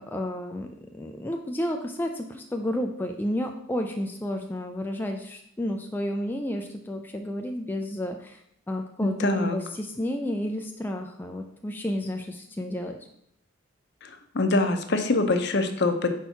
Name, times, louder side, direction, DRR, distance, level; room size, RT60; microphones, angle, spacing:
voice 1, 0.0-13.0, left 1 dB, 10° left, 3 dB, 0.3 m, -31 dB
voice 2, 9.0-9.6 14.0-16.1, left 2 dB, 55° left, 7 dB, 0.7 m, -24 dB
4.6 x 4.4 x 5.6 m, 0.74 s
head